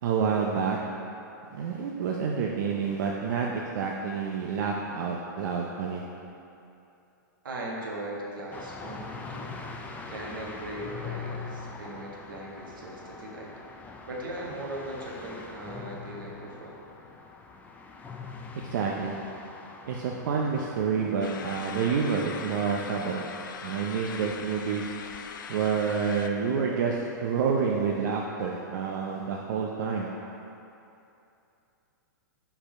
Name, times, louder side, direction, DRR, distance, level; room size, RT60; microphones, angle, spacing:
voice 1, 0.0-0.8 1.5-6.0 18.6-19.1 19.9-23.3 23.6-24.9 25.5-30.1, right 6 dB, 65° right, -1 dB, 0.6 m, -28 dB
voice 2, 7.4-9.5 10.1-13.5 14.1-16.7, right 1 dB, 85° right, -3 dB, 1.4 m, -39 dB
sound 1, 8.5-21.9, left 4 dB, 15° left, 0.4 m, -43 dB
sound 2, 21.2-26.3, left 6 dB, 75° left, 0.5 m, -40 dB
5.5 x 4.5 x 4.9 m, 2.8 s
hypercardioid pair, 130°, 11 cm